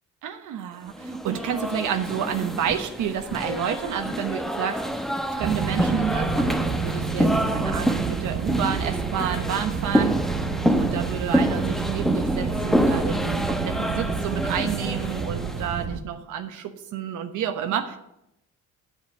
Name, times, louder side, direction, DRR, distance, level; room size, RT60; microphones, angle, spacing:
voice 1, 0.2-5.0 5.3-10.2 10.8-18.0, right 8 dB, 85° right, 6 dB, 1.1 m, -30 dB
sound 1, 1.0-15.7, equal, ahead, 1.0 m, -27 dB
sound 2, 5.4-16.0, right 6 dB, 50° right, 0.9 m, -30 dB
8.5 x 7.4 x 8.1 m, 0.83 s
cardioid pair, 90°, 30 cm